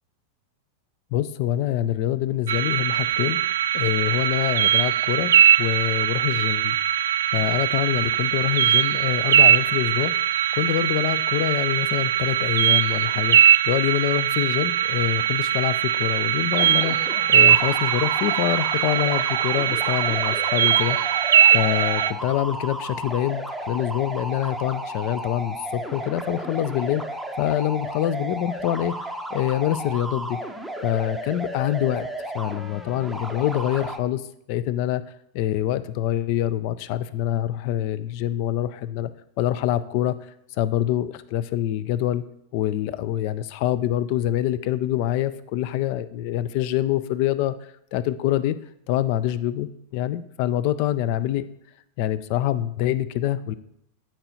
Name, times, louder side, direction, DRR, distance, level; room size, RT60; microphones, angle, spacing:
voice 1, 1.1-3.4 3.7-5.3 5.6-6.8 7.3-10.1 10.5-13.4 13.6-21.2 21.5-27.0 27.4-30.4 30.8-32.1 32.3-34.2 34.5-35.0 35.3-39.1 39.4-40.2 40.6-42.2 42.5-47.5 47.9-48.6 48.9-51.4 52.0-53.6, left 12 dB, 45° left, 16 dB, 0.4 m, -25 dB
sound 1, 2.5-22.1, right 10 dB, 65° right, 0.3 m, -21 dB
sound 2, 16.5-34.0, right 1 dB, ahead, 0.7 m, -33 dB
12.5 x 4.6 x 2.7 m, 0.76 s
figure-of-eight pair, 90°, 0 cm